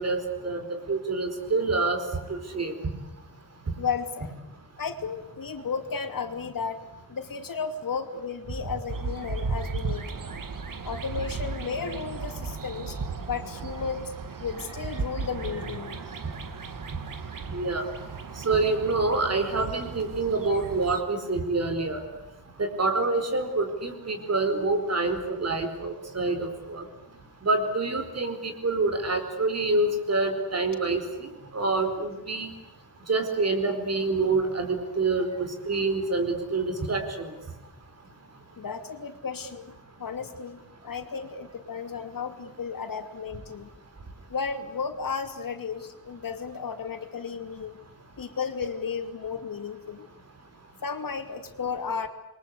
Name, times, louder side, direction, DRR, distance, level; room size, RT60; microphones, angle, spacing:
voice 1, 0.0-2.0 2.3-2.7 17.5-17.8 18.4-22.0 22.6-26.8 27.4-32.5 33.1-35.3 35.7-37.3, right 3 dB, 45° right, 7 dB, 4.6 m, -27 dB
voice 2, 3.8-4.3 4.8-6.8 7.1-10.2 10.8-13.0 13.3-14.1 14.4-16.0 38.6-39.7 40.0-43.7 44.3-47.8 48.2-50.1 50.8-52.1, left 5 dB, 70° left, 6 dB, 2.9 m, -33 dB
sound 1, 8.9-21.0, right 4 dB, 65° right, 2.3 m, -35 dB
28.5 x 22.5 x 8.4 m, 0.97 s
wide cardioid pair, 180°, 35 cm